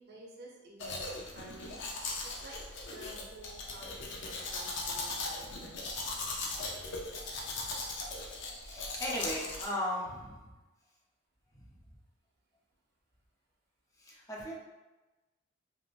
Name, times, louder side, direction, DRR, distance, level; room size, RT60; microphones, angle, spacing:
voice 1, 0.0-2.6 2.9-5.8, right 2 dB, 55° right, -2 dB, 0.7 m, -51 dB
Domestic sounds home sounds, 0.8-9.7, left 3 dB, 65° left, 0.5 m, -39 dB
voice 2, 8.6-10.5 11.5-11.7 14.0-14.5, left 1 dB, 15° left, -4 dB, 0.6 m, -37 dB
3.4 x 2.5 x 2.4 m, 1.2 s
head